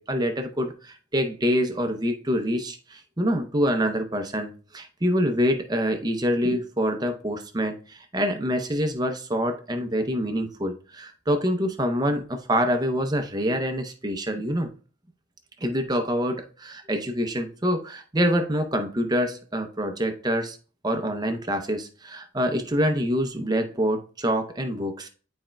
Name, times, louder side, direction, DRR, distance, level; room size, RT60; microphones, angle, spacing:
voice 1, 0.0-14.7 15.6-20.6 20.8-25.1, equal, 20° right, 6 dB, 0.7 m, -26 dB
11.0 x 4.3 x 2.3 m, 0.38 s
head